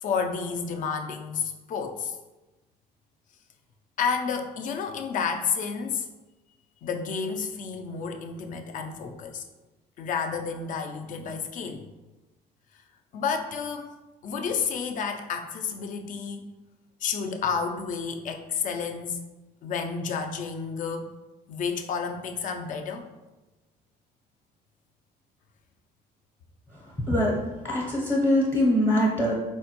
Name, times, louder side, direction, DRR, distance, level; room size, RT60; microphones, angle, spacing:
voice 1, 0.0-2.2 4.0-6.1 6.8-9.4 10.0-11.8 13.1-13.9 14.2-16.4 17.0-19.2 19.6-21.1 21.5-23.1, left 6 dB, 50° left, 5 dB, 0.4 m, -30 dB
voice 2, 27.6-29.3, left 1 dB, 15° left, -5 dB, 0.7 m, -22 dB
4.2 x 2.2 x 2.8 m, 1.1 s
cardioid pair, 110°, 17 cm